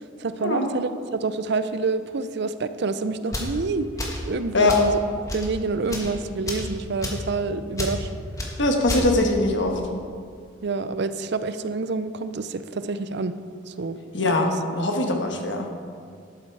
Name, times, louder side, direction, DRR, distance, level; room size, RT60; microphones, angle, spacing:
voice 1, 0.2-3.9 4.3-5.0 5.3-8.1 8.9-9.0 9.4-9.5 10.6-13.4 13.7-14.0, right 3 dB, 55° right, 11 dB, 0.5 m, -27 dB
sound 1, 3.3-3.6 4.0-4.3 4.7-4.9 5.3-5.5 5.9-6.1 6.5-6.7 7.0-7.3 7.8-8.0 8.4-8.5 8.9-9.1, left 1 dB, 15° left, 1.4 m, -30 dB
voice 2, 8.6-9.8 14.1-15.7, left 2 dB, 60° left, 3 dB, 1.3 m, -22 dB
11.5 x 8.8 x 4.7 m, 2.2 s
head